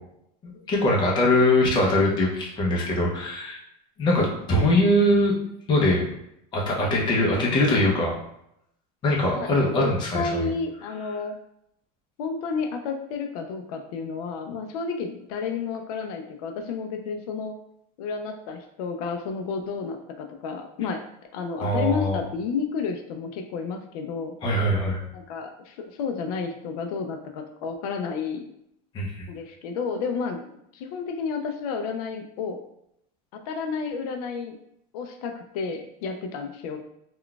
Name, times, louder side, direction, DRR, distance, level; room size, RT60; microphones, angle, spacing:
voice 1, 0.7-3.6 4.0-5.3 5.7-6.0 6.5-8.2 9.0-10.5 21.6-22.2 24.4-25.0 28.9-29.3, left 1 dB, 25° left, -2 dB, 0.6 m, -22 dB
voice 2, 9.3-11.3 12.2-17.6 18.0-21.0 21.3-24.3 25.1-28.4 29.3-32.6 33.3-34.6 34.9-36.8, left 5 dB, 80° left, 5 dB, 0.4 m, -31 dB
3.7 x 2.3 x 2.3 m, 0.77 s
cardioid pair, 160°, 19 cm